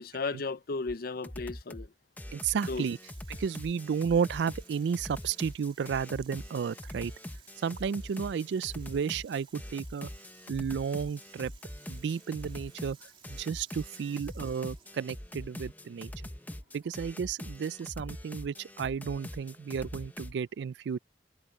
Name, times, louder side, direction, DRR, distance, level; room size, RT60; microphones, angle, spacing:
voice 1, 0.0-1.9 2.7-2.9, left 3 dB, 55° left, 0.6 m, -34 dB
sound 1, 0.9-1.0 1.2-1.9 2.2-20.3, left 1 dB, 10° left, 0.8 m, -43 dB
voice 2, 2.3-3.0 3.3-7.1 7.6-10.1 10.5-11.5 11.9-16.1 16.7-21.0, right 6 dB, 70° right, 0.3 m, -32 dB
Water tap faucet / Sink (filling or washing), 2.5-20.0, right 7 dB, 30° right, 2.4 m, -60 dB
head